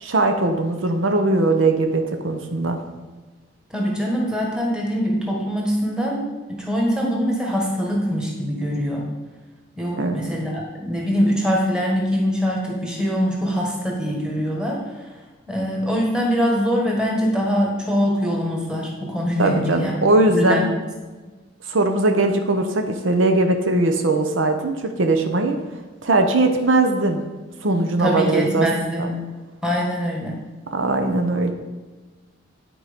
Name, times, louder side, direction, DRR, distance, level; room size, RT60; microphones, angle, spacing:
voice 1, 0.0-2.8 9.9-10.2 19.4-20.8 21.7-25.6 26.0-27.2 27.6-29.1 30.7-31.5, right 2 dB, 75° right, 5 dB, 0.8 m, -20 dB
voice 2, 3.7-6.2 6.5-9.0 9.8-14.8 15.5-19.9 20.3-20.6 28.0-29.1 29.6-30.4, equal, 5° right, -3 dB, 1.5 m, -23 dB
10.0 x 4.6 x 5.2 m, 1.3 s
head